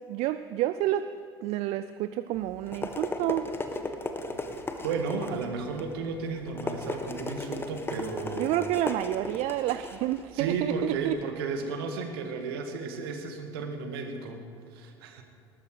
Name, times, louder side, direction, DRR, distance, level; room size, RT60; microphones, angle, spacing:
voice 1, 0.1-1.1 1.4-3.5 8.3-11.2, right 14 dB, 55° right, 13 dB, 0.5 m, -29 dB
sound 1, 2.3-11.2, left 2 dB, 15° left, 1.7 m, -36 dB
voice 2, 4.8-8.5 10.3-15.2, right 4 dB, 70° right, 5 dB, 1.8 m, -33 dB
19.5 x 13.5 x 4.9 m, 2.6 s
figure-of-eight pair, 60°, 13 cm